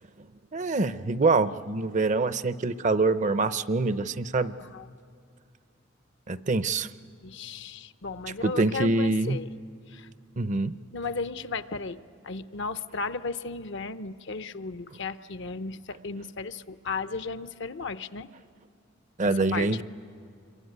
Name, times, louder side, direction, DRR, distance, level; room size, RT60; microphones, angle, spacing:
voice 1, 0.5-4.5 6.3-6.9 8.4-9.4 10.4-10.7 19.2-19.8, right 3 dB, 40° right, 14 dB, 0.6 m, -25 dB
voice 2, 7.2-9.5 9.9-10.1 10.9-12.0 12.2-18.3 19.2-19.8, left 4 dB, 65° left, 12 dB, 0.7 m, -35 dB
26.0 x 23.5 x 9.4 m, 2.4 s
head